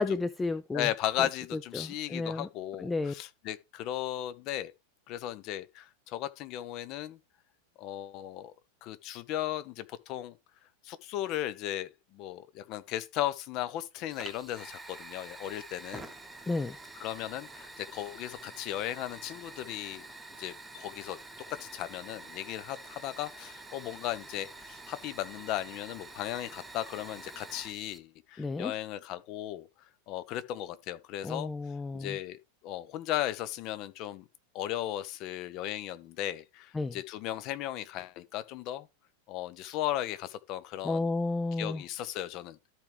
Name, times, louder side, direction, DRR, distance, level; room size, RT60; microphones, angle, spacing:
voice 1, 0.0-0.9 1.2-1.3 1.7-2.5 2.8-3.1 16.5-16.8 28.4-28.7 31.2-32.2 36.7-37.0 40.8-41.8, left 3 dB, 10° left, 0.4 m, -32 dB
voice 2, 0.7-4.7 5.1-7.2 7.8-8.5 8.8-10.3 10.8-16.1 17.0-20.0 20.4-21.2 21.6-29.7 30.1-31.5 31.9-34.2 34.5-38.9 39.3-41.1 41.6-42.6, left 13 dB, 40° left, 0.8 m, -36 dB
Fire, 14.1-28.0, right 2 dB, 10° right, 1.1 m, -47 dB
13.5 x 4.7 x 3.3 m
figure-of-eight pair, 90°, 0 cm